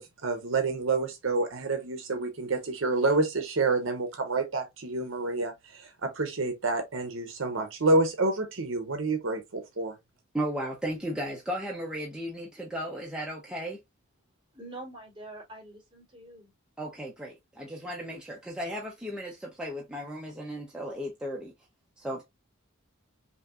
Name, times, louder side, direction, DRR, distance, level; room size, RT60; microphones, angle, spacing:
voice 1, 0.0-9.9, right 3 dB, 65° right, 0.8 m, -28 dB
voice 2, 10.3-13.8 16.8-21.5 22.0-22.2, equal, 5° right, 0.7 m, -35 dB
voice 3, 14.5-16.5, right 2 dB, 25° right, 2.7 m, -45 dB
5.7 x 2.6 x 2.4 m
head